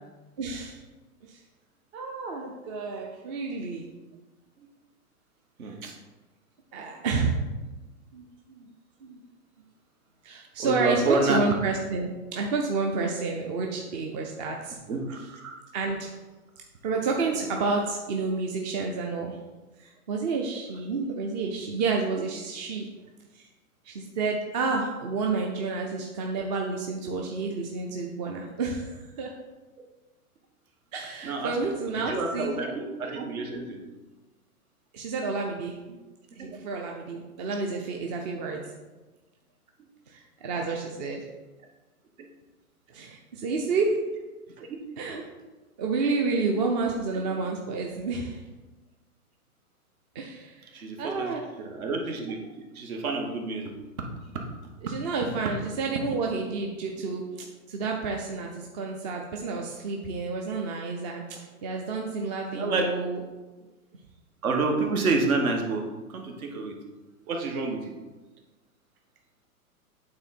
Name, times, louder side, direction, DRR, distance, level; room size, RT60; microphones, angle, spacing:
voice 1, 0.4-0.8 1.3-1.4 1.9-3.9 5.6-5.7 6.7-7.4 8.1-8.7 9.0-9.2 10.2-14.8 15.2-15.3 15.7-16.1 16.8-19.4 19.8-22.9 23.3-23.5 23.8-29.3 30.9-32.5 34.9-36.0 36.4-38.7 40.1-41.2 42.9-43.9 45.0-45.2 45.8-48.4 50.1-51.5 54.8-57.2 57.7-63.2, right 4 dB, 30° right, 1 dB, 0.6 m, -30 dB
voice 2, 5.6-5.9 10.6-11.4 14.9-15.5 31.2-31.6 31.9-33.8 36.4-36.6 44.6-44.7 50.7-51.3 51.7-52.4 52.7-53.7 62.5-62.9 64.4-65.8 66.1-66.8 67.3-67.8, right 3 dB, 65° right, 2 dB, 1.6 m, -28 dB
8.8 x 3.7 x 4.2 m, 1.2 s
hypercardioid pair, 140°, 45 cm